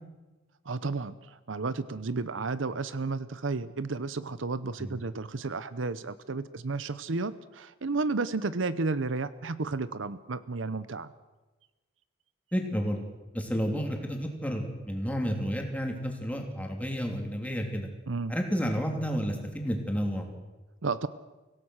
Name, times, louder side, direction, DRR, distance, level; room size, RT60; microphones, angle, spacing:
voice 1, 0.7-11.1 18.1-18.4 20.8-21.1, right 3 dB, 75° right, 15 dB, 0.8 m, -32 dB
voice 2, 12.5-13.0 13.3-17.9 18.3-20.3, equal, 10° left, 2 dB, 3.1 m, -31 dB
25.0 x 17.0 x 6.5 m, 1.2 s
head